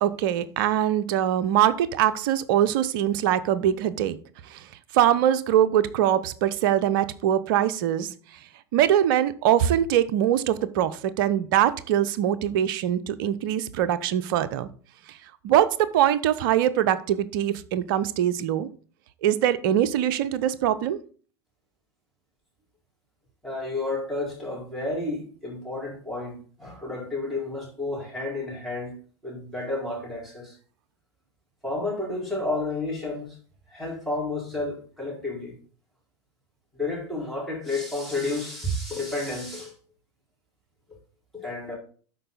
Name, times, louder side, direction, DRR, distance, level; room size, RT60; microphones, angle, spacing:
voice 1, 0.0-4.2 4.4-4.7 4.9-8.1 8.7-14.7 15.4-18.7 19.2-21.0, right 11 dB, 50° right, 0.6 m, -23 dB
voice 2, 23.4-28.9 29.2-30.5 31.6-33.4 33.7-35.5 36.7-39.7 41.3-41.7, left 2 dB, ahead, 4.5 m, -31 dB
12.0 x 4.6 x 4.0 m
figure-of-eight pair, 80°, 14 cm